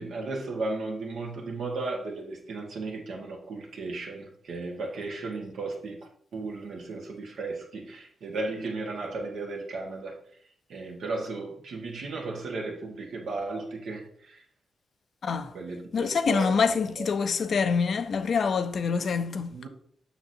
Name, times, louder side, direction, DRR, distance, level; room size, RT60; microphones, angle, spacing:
voice 1, 0.0-10.2 10.7-14.4 15.5-16.7 17.0-17.1 19.5-19.7, right 3 dB, 80° right, 1.6 m, -35 dB
voice 2, 15.2-15.5 15.9-19.7, left 5 dB, 65° left, 0.5 m, -26 dB
7.1 x 6.1 x 2.7 m
cardioid pair, 75°, 0 cm